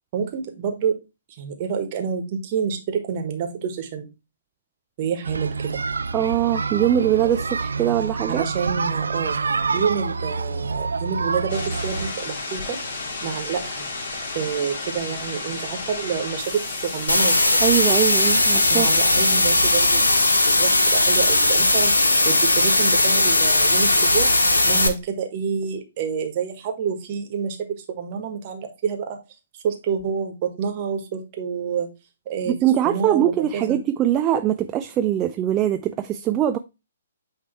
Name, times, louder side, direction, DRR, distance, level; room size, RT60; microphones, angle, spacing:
voice 1, 0.1-1.0 1.4-4.1 5.0-5.8 8.3-9.4 9.7-12.8 13.2-13.9 14.3-17.8 18.7-24.3 24.6-29.2 29.5-31.9 32.2-32.6 32.8-33.8, right 6 dB, 40° right, 1.6 m, -28 dB
sound 1, 5.2-12.1, right 4 dB, 70° right, 0.6 m, -27 dB
voice 2, 6.1-8.4 17.6-18.9 32.5-36.6, right 11 dB, 20° right, 0.4 m, -22 dB
sound 2, 11.5-17.5, left 3 dB, 50° left, 2.1 m, -32 dB
sound 3, 17.1-24.9, left 2 dB, 75° left, 1.3 m, -18 dB
8.8 x 3.3 x 4.5 m
figure-of-eight pair, 125°, 0 cm